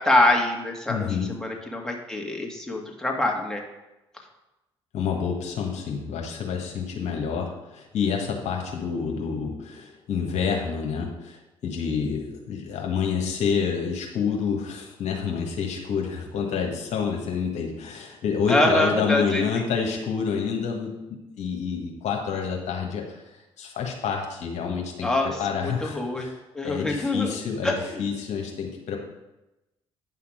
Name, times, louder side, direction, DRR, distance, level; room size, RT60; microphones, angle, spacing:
voice 1, 0.0-3.6 18.5-19.4 25.0-27.4 27.6-28.0, left 1 dB, 5° left, 0 dB, 2.2 m, -25 dB
voice 2, 0.9-1.3 4.9-25.1 25.4-26.4 26.6-29.0, left 6 dB, 60° left, 1 dB, 1.5 m, -28 dB
9.4 x 5.7 x 5.0 m, 0.97 s
hypercardioid pair, 50°, 13 cm